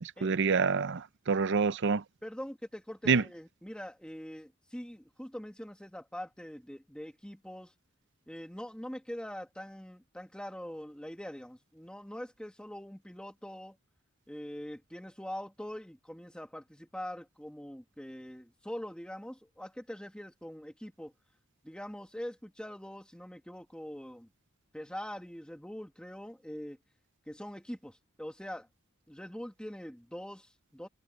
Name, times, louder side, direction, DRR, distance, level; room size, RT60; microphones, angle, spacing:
voice 1, 0.0-2.0 3.1-3.2, right 5 dB, 60° right, 0.6 m, -27 dB
voice 2, 2.2-7.7 8.3-13.8 14.3-21.1 21.6-24.3 24.7-26.8 27.3-28.7 29.1-30.9, equal, 5° left, 1.8 m, -43 dB
head